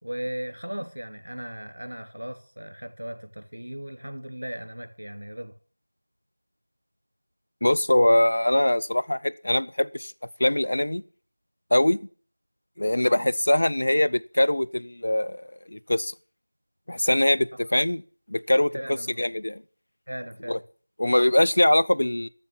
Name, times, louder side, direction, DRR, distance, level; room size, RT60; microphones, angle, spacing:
voice 1, 0.0-5.5 13.1-13.3 18.7-19.2 20.1-20.6, equal, 70° right, 2.7 m, -37 dB
voice 2, 7.6-10.1 10.4-11.0 11.7-12.0 12.8-16.1 16.9-18.0 18.3-18.7 19.2-19.6 20.5-20.6 21.0-22.3, left 1 dB, 30° left, 0.5 m, -22 dB
12.0 x 6.9 x 8.8 m
figure-of-eight pair, 180°, 0 cm